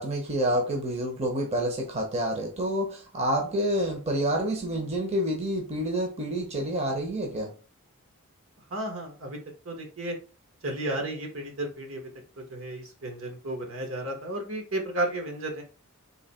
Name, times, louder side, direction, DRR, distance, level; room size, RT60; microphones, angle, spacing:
voice 1, 0.0-7.5, right 1 dB, 30° right, 0.9 m, -28 dB
voice 2, 8.7-9.4 9.6-10.2 10.6-12.1 12.4-15.6, right 1 dB, 70° right, 1.4 m, -33 dB
3.9 x 2.8 x 4.2 m
head